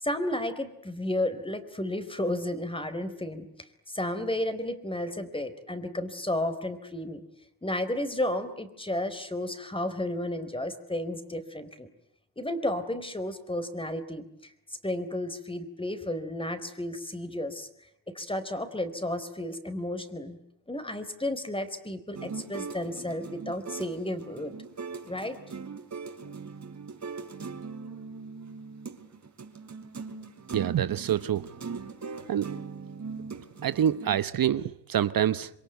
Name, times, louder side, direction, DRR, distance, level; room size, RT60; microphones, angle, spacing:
voice 1, 0.0-3.5 3.9-7.2 7.6-11.9 12.4-14.2 14.8-17.7 18.1-20.4 20.7-24.5 25.1-25.4, left 1 dB, 15° left, 4.3 m, -32 dB
sound 1, 22.1-34.2, right 5 dB, 45° right, 4.0 m, -40 dB
voice 2, 30.5-31.5 32.3-32.5 33.6-35.5, right 10 dB, 60° right, 1.0 m, -26 dB
27.5 x 23.0 x 9.4 m
cardioid pair, 75°, 38 cm